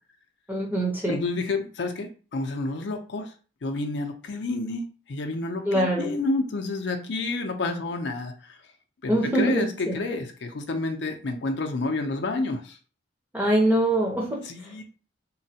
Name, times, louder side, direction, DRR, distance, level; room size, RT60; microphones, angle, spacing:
voice 1, 0.5-1.2 5.7-6.1 9.1-10.0 13.3-14.4, right 1 dB, 10° right, -2 dB, 0.7 m, -23 dB
voice 2, 1.1-3.3 3.6-8.6 9.0-12.8 14.4-14.8, left 3 dB, 65° left, 4 dB, 0.5 m, -29 dB
3.1 x 2.2 x 2.7 m, 0.37 s
head